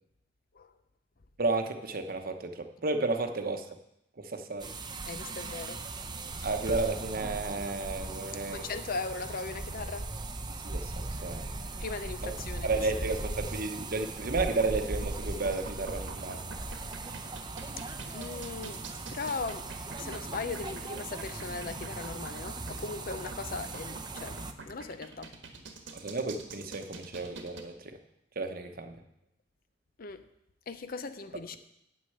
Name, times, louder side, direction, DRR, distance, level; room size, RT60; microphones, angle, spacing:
voice 1, 1.4-3.7 4.2-4.7 6.4-8.7 10.6-11.5 12.2-12.3 12.6-16.4 25.9-28.0 28.4-29.0, right 3 dB, 55° right, 1.0 m, -32 dB
sound 1, 4.6-24.5, right 2 dB, 25° right, 0.7 m, -39 dB
voice 2, 5.1-5.8 8.5-10.1 11.8-12.7 18.1-18.8 19.1-19.7 20.0-24.4 24.7-25.3 30.0-30.2 30.7-31.6, left 4 dB, 50° left, 0.6 m, -38 dB
sound 2, 14.2-27.6, right 4 dB, 85° right, 1.5 m, -46 dB
9.1 x 6.4 x 7.8 m
head